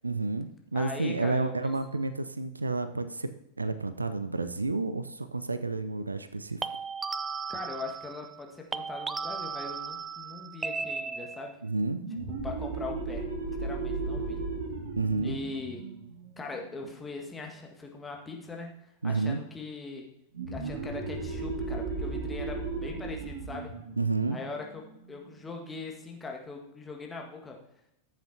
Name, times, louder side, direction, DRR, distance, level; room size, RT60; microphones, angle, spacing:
voice 1, 0.0-3.3 3.6-6.7 11.6-12.0 15.0-15.4 19.0-19.4 24.0-24.4, right 3 dB, 80° right, 11 dB, 0.5 m, -30 dB
voice 2, 0.7-1.5 7.5-11.6 12.3-13.3 13.6-14.4 15.2-15.9 16.4-20.1 20.5-23.7 24.3-24.8 25.1-27.6, left 3 dB, 15° left, 1 dB, 1.7 m, -41 dB
sound 1, 1.6-1.9 6.6-8.4 8.7-11.6, right 5 dB, 15° right, 0.4 m, -36 dB
sound 2, 12.0-17.3 20.3-25.6, right 3 dB, 55° right, 2.1 m, -36 dB
14.5 x 8.1 x 2.8 m, 0.81 s
figure-of-eight pair, 90°, 0 cm